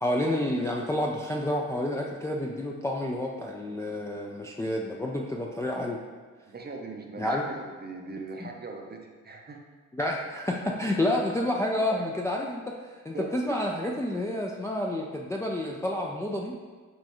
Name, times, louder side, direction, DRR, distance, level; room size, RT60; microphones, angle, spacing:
voice 1, 0.0-6.0 7.2-7.5 8.4-8.5 9.9-16.6, left 1 dB, 10° left, -1 dB, 0.4 m, -29 dB
voice 2, 6.5-9.6 11.9-12.0 13.1-13.6, right 3 dB, 30° right, 2 dB, 0.7 m, -40 dB
6.3 x 2.3 x 3.0 m, 1.4 s
supercardioid pair, 55°, 35 cm